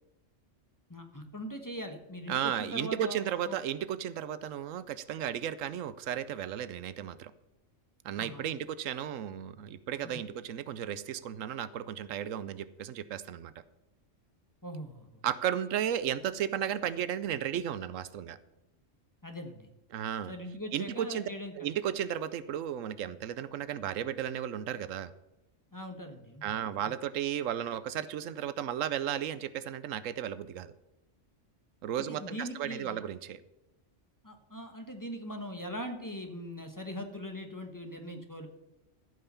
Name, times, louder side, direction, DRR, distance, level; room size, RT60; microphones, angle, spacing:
voice 1, 0.9-3.6 8.2-8.4 10.0-10.2 14.6-15.2 19.2-19.7 20.3-21.7 25.7-26.6 32.1-33.0 34.2-38.5, equal, 15° left, 5 dB, 1.3 m, -41 dB
voice 2, 2.3-7.3 8.0-13.5 15.2-18.4 19.9-20.3 20.7-21.3 21.6-25.1 26.4-30.7 31.8-33.4, right 10 dB, 85° right, 15 dB, 1.0 m, -34 dB
14.5 x 5.7 x 6.8 m, 0.97 s
omnidirectional pair, 1.3 m